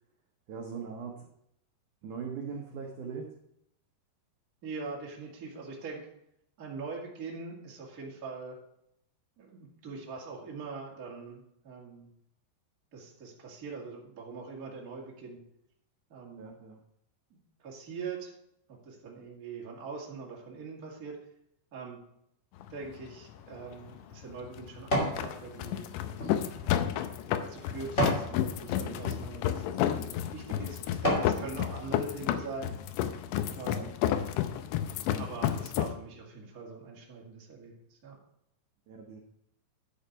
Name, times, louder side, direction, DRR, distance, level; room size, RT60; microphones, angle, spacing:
voice 1, 0.5-1.3 2.0-3.3 16.4-16.8 33.4-33.9 38.9-39.2, right 6 dB, 75° right, 0 dB, 1.8 m, -40 dB
voice 2, 4.6-6.1 6.6-8.6 9.4-12.1 12.9-15.4 16.1-16.5 17.3-18.3 18.7-21.2 21.7-22.0 22.7-25.8 26.5-27.1 27.4-32.7 33.5-34.0 35.1-38.2, right 4 dB, 35° right, -2 dB, 1.4 m, -42 dB
sound 1, 22.6-35.9, left 11 dB, 85° left, 2.9 m, -32 dB
sound 2, 23.4-25.2 25.7-28.3 28.9-29.2 29.8-30.0 30.5-31.4 31.9-32.0, equal, 25° left, 1.7 m, -32 dB
11.0 x 6.9 x 4.6 m, 0.75 s
omnidirectional pair, 5.2 m